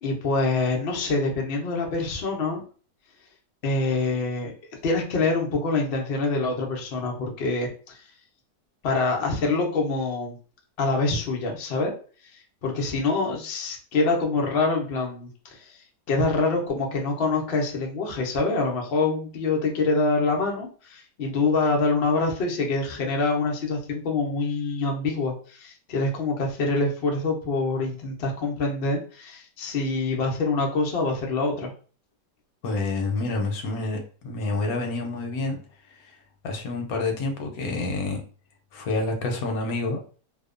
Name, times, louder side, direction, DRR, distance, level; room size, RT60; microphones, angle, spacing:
voice 1, 0.0-2.6 3.6-4.5 4.8-8.0 8.8-10.4 10.8-11.9 12.6-15.7 16.1-31.7, left 3 dB, 90° left, 0 dB, 0.5 m, -25 dB
voice 2, 32.6-35.6 35.9-36.2 36.4-38.2 38.7-40.0, left 3 dB, 70° left, 3 dB, 0.9 m, -28 dB
2.7 x 2.1 x 2.4 m, 0.40 s
omnidirectional pair, 1.8 m